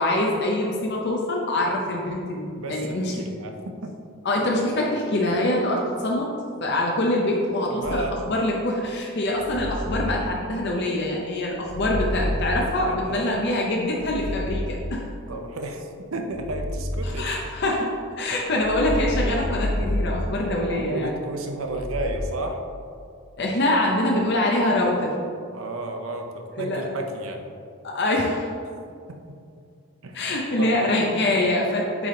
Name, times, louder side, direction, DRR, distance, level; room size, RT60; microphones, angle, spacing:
voice 1, 0.0-3.3 4.2-6.3 6.6-15.0 17.0-17.9 18.2-21.1 23.4-25.1 26.5-26.8 27.8-28.5 30.1-32.1, left 1 dB, 50° left, -2 dB, 0.7 m, -24 dB
voice 2, 2.6-4.0 7.7-8.2 12.9-13.3 15.3-17.3 20.5-22.6 25.5-27.5 28.7-28.8 29.1-29.2 30.0-31.1, right 2 dB, 70° right, 4 dB, 0.7 m, -33 dB
sound 1, 7.8-8.5 9.3-11.0 11.6-13.4 13.9-15.5 16.3-17.9 18.5-21.0 21.6-22.2, left 1 dB, 45° right, 1.2 m, -30 dB
8.5 x 3.5 x 3.8 m, 2.3 s
head